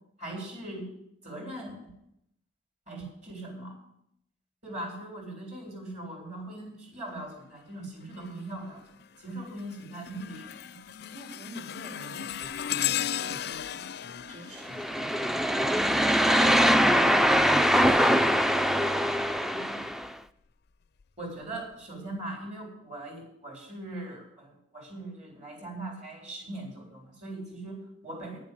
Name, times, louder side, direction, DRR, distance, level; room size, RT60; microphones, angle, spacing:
voice 1, 0.2-0.9 1.2-1.9 2.9-3.8 4.6-8.8 9.2-10.8 13.4-14.0 19.5-19.9 21.2-28.4, right 1 dB, 40° right, 0 dB, 3.8 m, -40 dB
sound 1, 8.1-8.5 9.0-15.8 17.1-19.3 19.9-20.1 21.0-21.1, left 11 dB, 60° left, 0.4 m, -37 dB
voice 2, 11.1-13.6 14.0-18.4, right 2 dB, 65° right, -6 dB, 3.4 m, -46 dB
sound 2, 14.7-20.1, equal, ahead, 0.3 m, -23 dB
10.0 x 7.3 x 8.5 m, 0.77 s
head